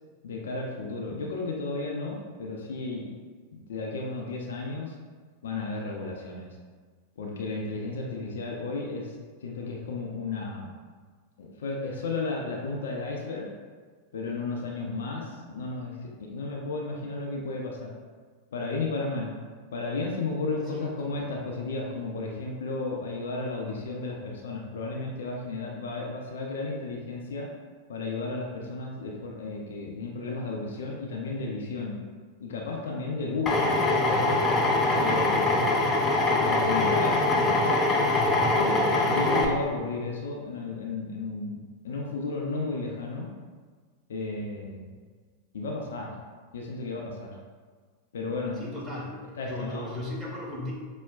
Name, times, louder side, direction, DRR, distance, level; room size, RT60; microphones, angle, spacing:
voice 1, 0.2-3.1 3.5-4.9 5.4-6.5 7.2-9.1 9.4-10.7 11.4-13.5 14.1-17.9 18.5-19.4 19.7-27.5 27.9-32.0 32.4-33.8 34.1-34.4 35.0-35.7 36.4-37.7 38.5-43.3 44.1-44.9 45.5-46.1 46.5-47.3 48.1-48.6 49.4-49.9, left 3 dB, 65° left, -1 dB, 0.5 m, -33 dB
voice 2, 20.7-21.1 48.6-50.7, left 1 dB, ahead, -6 dB, 1.4 m, -37 dB
Drill, 33.5-39.5, left 2 dB, 20° left, 0.5 m, -23 dB
5.4 x 2.1 x 2.3 m, 1.5 s
figure-of-eight pair, 90°, 0 cm